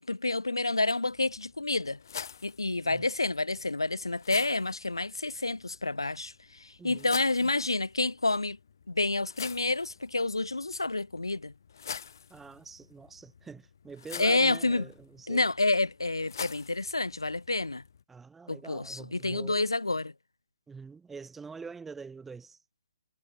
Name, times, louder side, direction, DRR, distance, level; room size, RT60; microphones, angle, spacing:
voice 1, 0.1-2.0 2.4-6.3 6.6-8.6 8.9-11.5 14.2-14.9 15.3-17.8 18.5-20.1, left 2 dB, 75° left, 0.6 m, -29 dB
sound 1, 1.0-18.0, left 7 dB, 50° left, 5.5 m, -46 dB
voice 2, 6.8-7.1 12.3-15.5 18.1-19.7 20.7-22.6, right 5 dB, 5° right, 1.8 m, -45 dB
figure-of-eight pair, 130°, 2 cm